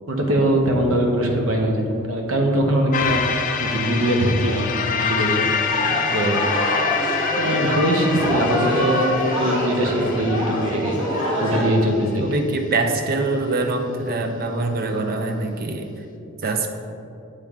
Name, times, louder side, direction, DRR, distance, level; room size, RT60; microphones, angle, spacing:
voice 1, 0.1-3.2 3.6-5.8 6.1-6.4 7.4-9.1 9.4-11.0 11.4-12.3, right 1 dB, 75° right, 1 dB, 0.8 m, -21 dB
sound 1, 2.9-11.4, left 6 dB, 40° left, 0.4 m, -26 dB
sound 2, 5.7-11.6, equal, 20° right, 1.4 m, -25 dB
voice 2, 12.2-16.0 16.4-16.7, right 3 dB, 45° right, 5 dB, 0.5 m, -24 dB
8.4 x 3.4 x 3.6 m, 2.6 s
head